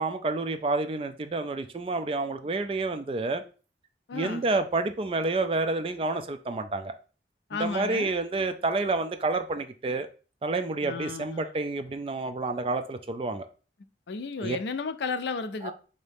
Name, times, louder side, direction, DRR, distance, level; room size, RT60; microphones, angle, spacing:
voice 1, 0.0-3.4 4.1-6.9 7.5-10.1 10.4-13.5 14.4-14.6 15.6-15.7, right 3 dB, 30° right, 0.3 m, -29 dB
voice 2, 4.1-4.4 7.5-8.1 10.8-11.5 14.1-15.7, left 4 dB, 75° left, 0.4 m, -33 dB
3.9 x 2.7 x 3.3 m
head